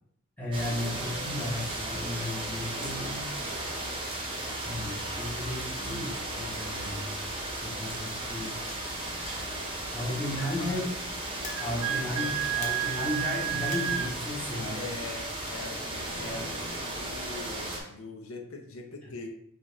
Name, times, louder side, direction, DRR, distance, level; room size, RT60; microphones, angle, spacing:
voice 1, 0.4-3.2 4.6-7.2 7.5-8.6 9.9-10.9 11.6-12.3 12.5-14.9 16.2-16.6 19.0-19.1, left 1 dB, 5° left, -8 dB, 0.9 m, -34 dB
sound 1, 0.5-17.8, right 1 dB, 25° right, 0.8 m, -35 dB
voice 2, 2.7-3.9 10.2-10.8 11.7-12.4 14.3-19.3, left 3 dB, 65° left, 3 dB, 0.7 m, -43 dB
Chink clink, 6.7-15.0, left 3 dB, 30° left, 0.7 m, -49 dB
Wind instrument woodwind instrument, 11.5-14.1, right 12 dB, 65° right, 0.3 m, -31 dB
5.1 x 2.4 x 3.9 m, 0.71 s
head